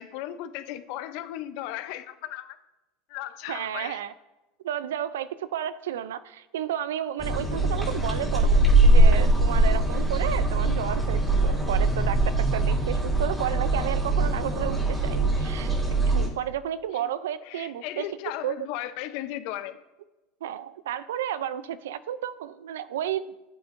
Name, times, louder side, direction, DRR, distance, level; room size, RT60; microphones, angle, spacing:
voice 1, 0.0-2.6 3.1-4.0 16.9-17.1 17.4-19.8, left 13 dB, 65° left, 12 dB, 0.6 m, -36 dB
voice 2, 3.5-4.1 4.6-15.7 16.1-18.1 18.4-18.5 20.4-23.3, right 10 dB, 85° right, 15 dB, 0.4 m, -32 dB
sound 1, 7.2-16.3, right 2 dB, 10° right, 2.3 m, -22 dB
9.7 x 8.0 x 2.6 m, 1.1 s
supercardioid pair, 100°, 0 cm